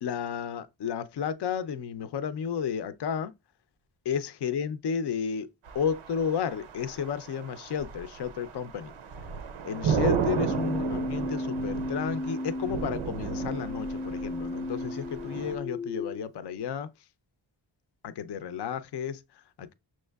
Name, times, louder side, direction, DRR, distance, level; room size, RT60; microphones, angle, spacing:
voice 1, 0.0-3.3 4.0-5.5 5.7-8.9 9.6-16.9 18.0-19.7, left 7 dB, 60° left, 0.6 m, -32 dB
sound 1, 5.6-15.6, right 6 dB, 85° right, 0.6 m, -34 dB
Keyboard (musical), 10.3-16.2, left 2 dB, 10° left, 0.5 m, -34 dB
6.3 x 3.0 x 2.3 m
cardioid pair, 55°, 47 cm